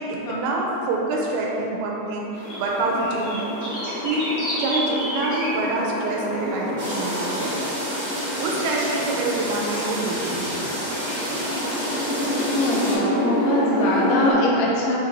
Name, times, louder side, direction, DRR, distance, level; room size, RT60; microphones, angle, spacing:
voice 1, 0.0-3.6 4.0-7.6 8.4-11.0, right 2 dB, 90° right, -2 dB, 2.9 m, -26 dB
sound 1, 2.3-14.3, left 1 dB, 65° left, 2.1 m, -27 dB
sound 2, 5.5-5.7 6.0-6.8 7.2-7.7 8.3-9.8 10.2-11.7, equal, 70° right, 2.1 m, -44 dB
sound 3, 6.8-13.0, equal, 55° right, 1.7 m, -31 dB
voice 2, 12.5-15.0, left 1 dB, 80° left, -4 dB, 2.6 m, -23 dB
6.9 x 2.6 x 2.9 m, 3.0 s
omnidirectional pair, 4.9 m